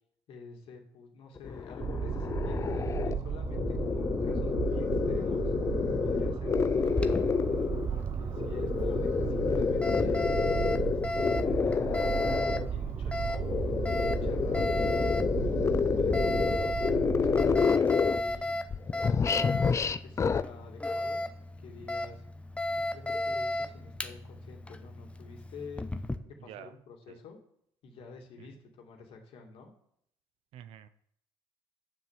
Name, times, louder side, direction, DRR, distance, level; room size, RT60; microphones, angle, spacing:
voice 1, 0.3-5.5 6.0-7.3 7.9-10.3 10.8-11.8 12.3-15.1 15.4-16.8 17.1-18.5 19.0-21.2 21.6-22.2 22.7-25.8 26.4-27.4 27.8-29.7, left 4 dB, 65° left, 2 dB, 2.5 m, -48 dB
sound 1, 1.4-7.9 8.3-12.7 13.3-18.4 18.7-20.4, left 6 dB, 30° left, 0.5 m, -29 dB
sound 2, 1.8-17.7, right 7 dB, 40° right, 0.7 m, -34 dB
Alarm, 6.8-26.2, left 1 dB, 10° left, 0.9 m, -35 dB
voice 2, 30.5-30.9, right 10 dB, 70° right, 13 dB, 0.8 m, -48 dB
8.9 x 7.2 x 7.5 m, 0.71 s
supercardioid pair, 90°, 10 cm